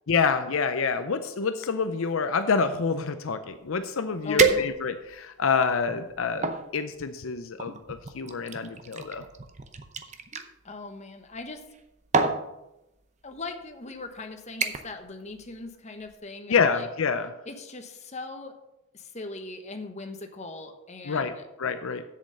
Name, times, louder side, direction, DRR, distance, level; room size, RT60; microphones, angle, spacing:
voice 1, 0.1-9.2 16.5-17.3 21.0-21.3 21.6-22.0, left 5 dB, 70° left, 9 dB, 0.6 m, -27 dB
sound 1, 3.7-3.8 4.4-5.1 5.8-6.6 7.6-10.5 11.6-11.8 12.1-12.4 13.3-13.5 13.9-14.2 14.6-15.0 15.3-15.7 16.1-16.2, right 4 dB, 35° right, 0.7 m, -28 dB
voice 2, 4.2-4.7 10.6-11.6 13.2-16.9 17.4-18.5 18.9-21.4, left 3 dB, 30° left, 5 dB, 1.0 m, -40 dB
7.7 x 7.2 x 6.5 m, 0.92 s
head